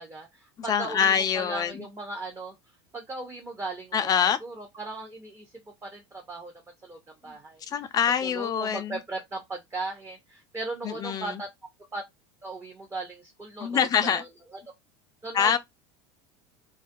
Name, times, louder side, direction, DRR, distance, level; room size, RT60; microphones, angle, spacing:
voice 1, 0.0-2.6 2.9-4.1 4.4-5.5 5.8-6.5 6.8-7.6 8.2-11.5 11.9-12.0 12.4-14.6 15.2-15.6, right 2 dB, 15° right, 0.6 m, -37 dB
voice 2, 0.6-1.8 3.9-4.4 7.7-9.0 10.8-11.4 13.6-14.2 15.3-15.6, left 8 dB, 30° left, 0.4 m, -25 dB
2.3 x 2.2 x 2.6 m
supercardioid pair, 115°, 13 cm